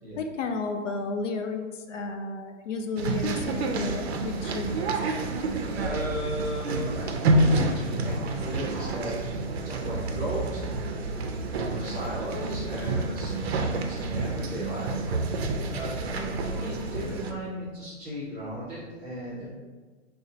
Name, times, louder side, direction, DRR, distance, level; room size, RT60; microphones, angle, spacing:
voice 1, 0.2-4.9, left 3 dB, 75° left, 5 dB, 0.6 m, -32 dB
sound 1, 3.0-17.3, right 2 dB, 60° right, 0.5 m, -29 dB
voice 2, 5.7-7.1 7.4-9.2 9.6-10.6 11.4-15.0 15.7-19.5, equal, 10° right, -9 dB, 0.6 m, -36 dB
5.1 x 2.1 x 2.7 m, 1.4 s
hypercardioid pair, 165°, 37 cm